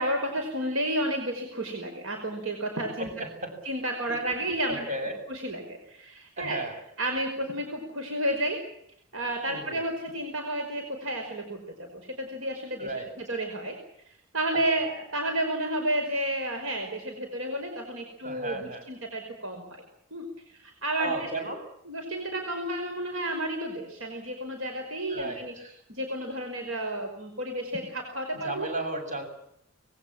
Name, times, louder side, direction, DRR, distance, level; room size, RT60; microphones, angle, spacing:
voice 1, 0.0-3.1 3.7-4.9 5.3-6.6 7.0-8.6 9.1-12.9 13.2-13.8 14.3-19.6 20.1-20.2 20.5-21.1 21.9-25.5 25.9-28.7, right 1 dB, 75° right, 4 dB, 5.3 m, -31 dB
voice 2, 3.0-3.6 4.1-5.2 6.4-6.8 9.5-9.8 12.8-13.1 14.8-14.9 18.2-18.8 21.0-21.6 25.1-25.8 28.3-29.2, right 2 dB, 35° right, 5 dB, 7.4 m, -35 dB
25.0 x 21.5 x 7.5 m, 0.74 s
head